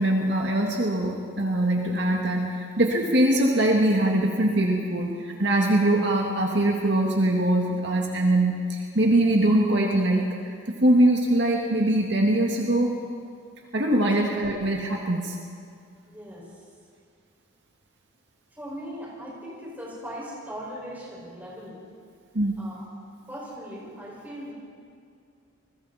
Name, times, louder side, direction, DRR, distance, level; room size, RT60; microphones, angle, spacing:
voice 1, 0.0-10.6 10.8-13.0 13.7-15.4 22.3-22.6, right 1 dB, 60° right, 0 dB, 2.0 m, -22 dB
voice 2, 16.0-16.6 18.5-21.8 22.6-22.9 23.3-24.5, equal, 10° right, -5 dB, 5.6 m, -39 dB
28.5 x 21.0 x 4.3 m, 2.3 s
head